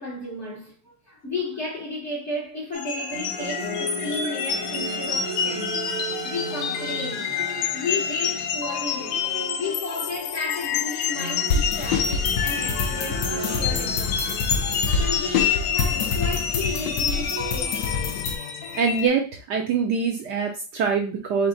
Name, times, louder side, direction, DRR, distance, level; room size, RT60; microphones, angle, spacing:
voice 1, 0.0-5.8 6.2-7.4 7.7-9.2 9.5-14.5 15.0-18.1, left 2 dB, 50° left, 0.9 m, -33 dB
sound 1, 2.7-19.1, left 7 dB, 85° left, 1.6 m, -28 dB
sound 2, 3.1-10.2 10.5-19.1, right 2 dB, 45° right, 0.7 m, -36 dB
sound 3, 11.5-18.3, left 5 dB, 70° left, 1.2 m, -26 dB
voice 2, 18.7-21.5, right 5 dB, 70° right, 1.0 m, -24 dB
5.9 x 2.1 x 3.8 m
omnidirectional pair, 2.4 m